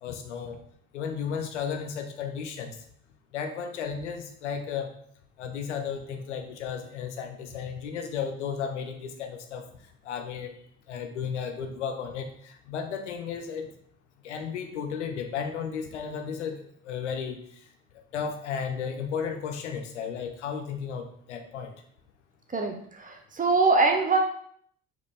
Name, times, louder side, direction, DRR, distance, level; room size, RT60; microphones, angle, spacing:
voice 1, 0.0-0.6 0.9-2.8 3.3-4.9 5.4-9.7 10.0-10.6 10.9-13.7 14.2-17.6 18.1-21.7, left 6 dB, 85° left, 5 dB, 0.6 m, -34 dB
voice 2, 22.5-24.2, right 3 dB, 25° right, 3 dB, 0.9 m, -23 dB
4.3 x 3.0 x 3.4 m, 0.63 s
hypercardioid pair, 55°, 34 cm